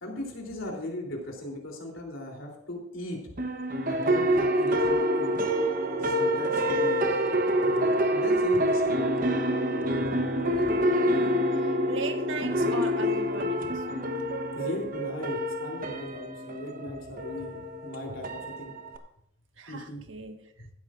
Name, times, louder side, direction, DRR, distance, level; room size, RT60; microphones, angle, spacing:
voice 1, 0.0-3.2 3.9-5.4 6.0-7.1 7.6-9.3 10.0-10.1 14.5-18.7 19.7-20.0 20.6-20.7, left 1 dB, 75° left, 3.3 m, -38 dB
sound 1, 3.4-19.0, equal, 40° right, 1.0 m, -27 dB
voice 2, 10.6-13.8 19.6-20.4, right 3 dB, 70° right, 1.5 m, -38 dB
15.5 x 13.0 x 2.5 m
head